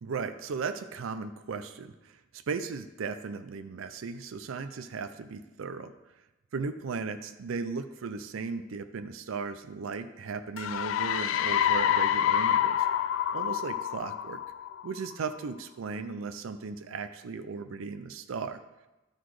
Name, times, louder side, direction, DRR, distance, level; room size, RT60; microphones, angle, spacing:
voice 1, 0.0-2.2 2.5-5.9 6.5-12.9 13.3-14.4 14.8-18.6, right 5 dB, 90° right, 9 dB, 0.4 m, -36 dB
sound 1, 10.6-15.1, left 10 dB, 80° left, 0.3 m, -27 dB
12.0 x 4.0 x 4.8 m, 1.1 s
head